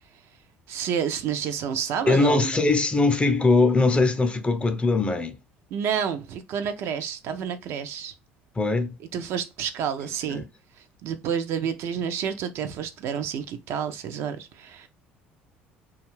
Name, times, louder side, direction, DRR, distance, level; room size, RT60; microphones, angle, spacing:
voice 1, 0.7-2.6 5.7-8.1 9.1-10.5 11.0-14.9, right 8 dB, 55° right, 0.4 m, -29 dB
voice 2, 2.1-5.3 8.6-9.0 10.3-10.4, left 3 dB, 20° left, 0.5 m, -21 dB
2.4 x 2.3 x 3.1 m
hypercardioid pair, 60°, 5 cm